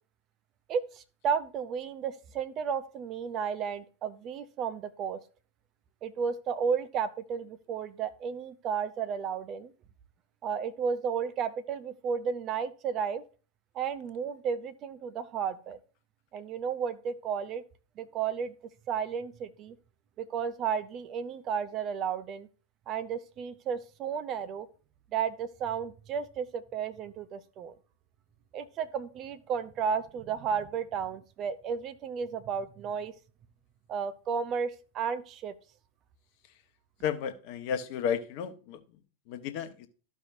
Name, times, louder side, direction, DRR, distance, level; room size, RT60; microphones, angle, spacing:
voice 1, 0.7-5.2 6.0-9.7 10.4-13.2 13.7-15.8 16.3-17.6 18.0-18.5 18.9-19.7 20.2-22.5 22.9-24.7 25.1-27.7 28.5-33.1 33.9-35.5, right 7 dB, 35° right, 11 dB, 0.7 m, -33 dB
voice 2, 37.0-38.8 39.3-39.9, left 8 dB, 45° left, 9 dB, 1.0 m, -33 dB
13.5 x 5.4 x 2.6 m, 0.37 s
figure-of-eight pair, 90°, 0 cm